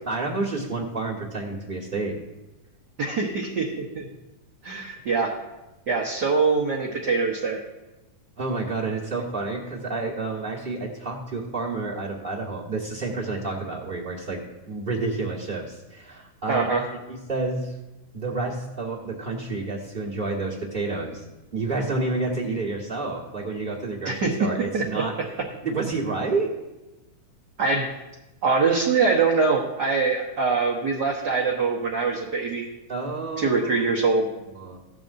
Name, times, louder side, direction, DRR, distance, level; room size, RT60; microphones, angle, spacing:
voice 1, 0.0-2.2 8.4-14.4 14.7-16.7 17.1-17.7 18.1-21.2 21.5-25.1 25.6-26.5 32.9-33.8 34.5-34.8, right 3 dB, 30° right, -7 dB, 0.9 m, -29 dB
voice 2, 3.0-4.0 4.6-5.3 5.9-7.6 16.5-16.8 24.0-24.5 24.7-24.8 27.6-27.9 28.4-32.6 33.4-34.3, right 4 dB, 60° right, -2 dB, 1.0 m, -23 dB
15.5 x 12.5 x 2.6 m, 1.0 s
omnidirectional pair, 3.4 m